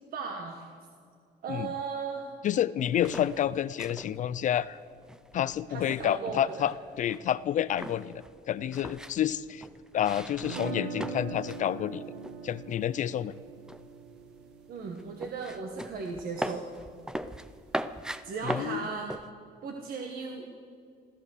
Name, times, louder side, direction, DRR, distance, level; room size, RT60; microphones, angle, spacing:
voice 1, 0.1-0.7 1.4-2.3 5.7-6.7 14.7-16.7 18.2-19.1 19.6-20.4, right 5 dB, 60° right, 2 dB, 1.5 m, -36 dB
voice 2, 2.4-4.8 5.3-9.6 9.9-12.0 12.4-13.3 18.4-18.9, left 10 dB, 50° left, 17 dB, 0.4 m, -29 dB
sound 1, 2.8-11.7 11.9-12.8 13.1-19.3, equal, 5° right, 0.5 m, -40 dB
sound 2, 10.4-16.4, right 5 dB, 85° right, 1.0 m, -41 dB
14.0 x 14.0 x 6.6 m, 2.3 s
cardioid pair, 110°, 17 cm